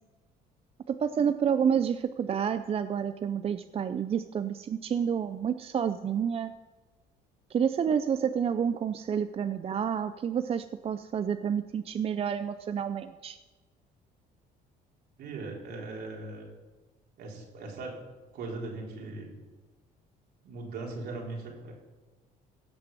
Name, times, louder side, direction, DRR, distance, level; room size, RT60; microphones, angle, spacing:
voice 1, 0.9-6.5 7.5-13.4, right 7 dB, 35° right, 11 dB, 0.5 m, -29 dB
voice 2, 15.2-16.5 17.2-18.0 18.3-19.4 20.4-21.7, right 3 dB, 70° right, -1 dB, 3.8 m, -39 dB
16.5 x 6.6 x 6.9 m, 1.2 s
cardioid pair, 110°, 17 cm